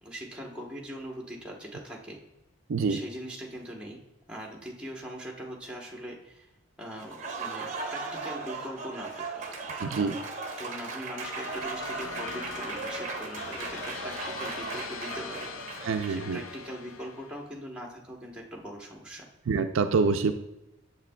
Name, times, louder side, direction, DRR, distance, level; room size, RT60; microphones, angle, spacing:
voice 1, 0.0-2.2 2.9-4.0 4.3-6.5 6.8-9.4 10.6-15.5 16.1-19.3, equal, 5° right, -2 dB, 1.0 m, -41 dB
Applause, 7.0-16.4, right 4 dB, 35° right, 0.8 m, -37 dB
voice 2, 9.8-10.2 15.8-16.4 19.5-20.3, right 4 dB, 70° right, 8 dB, 0.4 m, -26 dB
sound 1, 11.2-17.5, left 5 dB, 70° left, 0.6 m, -41 dB
8.2 x 6.9 x 2.3 m, 0.95 s
head